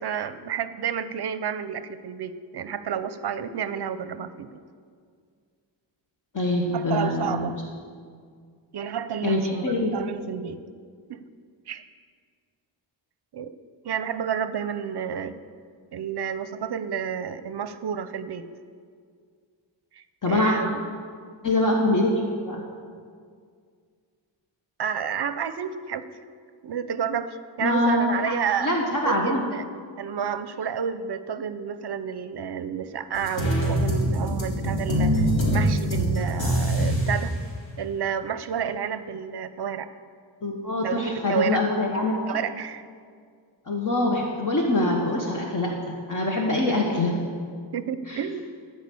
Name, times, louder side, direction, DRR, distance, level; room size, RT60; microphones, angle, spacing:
voice 1, 0.0-4.5 6.7-7.6 8.7-10.6 11.1-11.2 11.7-11.8 13.3-13.5 13.8-15.3 15.9-18.5 19.9-20.8 24.8-26.1 26.6-28.7 29.0-29.7 30.0-37.3 37.8-39.9 40.8-41.6 42.3-42.8 46.7-46.8 47.7-48.4, right 8 dB, 60° right, 12 dB, 0.6 m, -30 dB
voice 2, 6.3-7.5 9.2-9.9 20.2-20.5 21.4-22.1 22.4-22.6 27.6-28.3 28.6-29.4 40.4-42.4 43.7-47.1 48.1-48.2, left 2 dB, 40° left, -1 dB, 1.2 m, -24 dB
sound 1, 33.1-37.2, equal, 70° left, 3.0 m, -24 dB
13.5 x 5.0 x 8.3 m, 2.1 s
wide cardioid pair, 160°, 46 cm